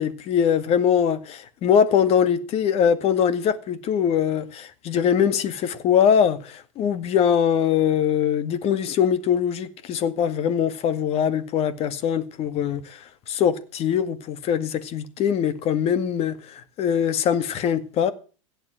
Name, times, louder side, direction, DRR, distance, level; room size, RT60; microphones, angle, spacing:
voice 1, 0.0-13.0 13.3-18.1, left 8 dB, 35° left, 2.0 m, -22 dB
16.5 x 7.8 x 7.6 m
hypercardioid pair, 115°, 17 cm